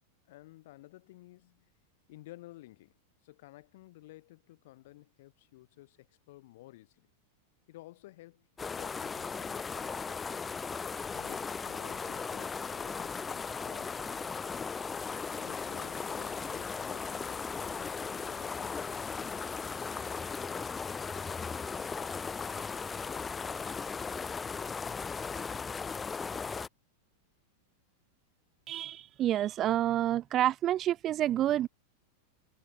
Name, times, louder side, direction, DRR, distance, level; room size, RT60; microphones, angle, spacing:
voice 1, 0.3-1.7 2.1-2.9 3.2-7.1 7.7-10.4 11.1-14.4 15.3-19.5, left 17 dB, 55° left, 3.8 m, -54 dB
sound 1, 8.6-26.7, left 5 dB, 15° left, 1.7 m, -37 dB
voice 2, 28.7-31.7, right 12 dB, 30° right, 1.1 m, -28 dB
figure-of-eight pair, 90°, 0 cm